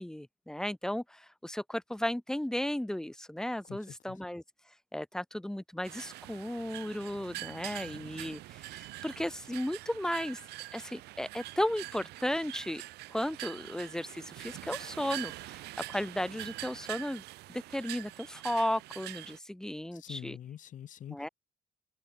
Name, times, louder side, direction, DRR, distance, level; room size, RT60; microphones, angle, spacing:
voice 1, 0.0-4.4 4.9-10.4 10.7-12.8 13.1-15.6 15.9-17.2 17.5-20.4 21.1-21.3, left 1 dB, 5° left, 0.8 m, -35 dB
voice 2, 3.6-4.2 19.9-21.2, left 10 dB, 50° left, 1.1 m, -45 dB
sound 1, 5.8-19.4, right 18 dB, 75° right, 0.5 m, -44 dB
open air
cardioid pair, 110°, 17 cm